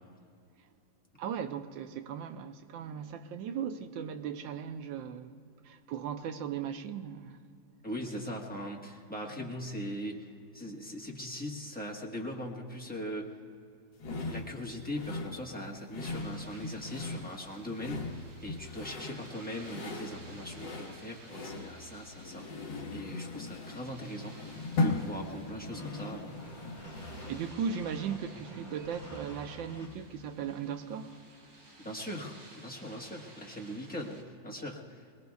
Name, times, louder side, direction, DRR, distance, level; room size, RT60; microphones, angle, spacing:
voice 1, 1.2-5.4 5.6-7.4 27.3-31.2, right 7 dB, 85° right, 1.4 m, -37 dB
voice 2, 7.8-10.3 10.5-13.3 14.3-22.5 22.9-26.4 31.8-35.0, equal, 5° left, 1.1 m, -40 dB
sound 1, 14.0-27.5, left 3 dB, 70° left, 2.0 m, -38 dB
sound 2, 16.0-34.2, right 2 dB, 70° right, 2.7 m, -55 dB
sound 3, 25.7-29.9, equal, 20° left, 2.9 m, -47 dB
23.5 x 20.5 x 2.4 m
omnidirectional pair, 2.1 m